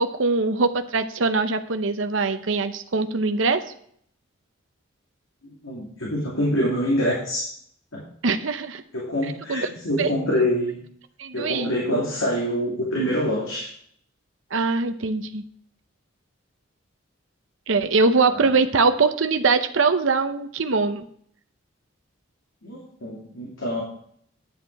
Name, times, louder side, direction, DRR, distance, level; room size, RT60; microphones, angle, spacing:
voice 1, 0.0-3.6 8.2-8.8 9.5-9.7 10.0-10.1 11.2-11.7 14.5-15.4 17.7-21.0, right 4 dB, 70° right, 8 dB, 0.8 m, -22 dB
voice 2, 5.4-7.5 7.9-8.0 8.9-10.8 11.3-13.7 18.3-18.5 22.6-23.8, equal, 85° left, -4 dB, 2.7 m, -25 dB
10.5 x 7.6 x 4.7 m, 0.64 s
head